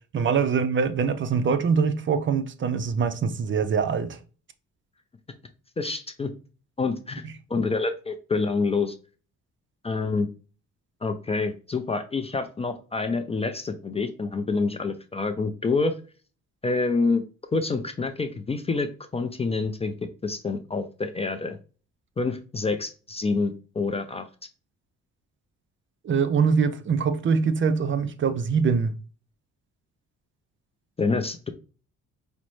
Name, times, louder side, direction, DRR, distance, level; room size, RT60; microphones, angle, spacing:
voice 1, 0.1-4.2 26.0-28.9, right 6 dB, 40° right, 0.5 m, -23 dB
voice 2, 5.8-6.3 6.8-8.9 9.8-10.3 11.0-15.9 16.6-17.2 17.5-19.9 20.2-21.6 22.2-24.3 31.0-31.5, left 3 dB, 20° left, 0.4 m, -27 dB
5.0 x 2.1 x 3.0 m
cardioid pair, 90°, 30 cm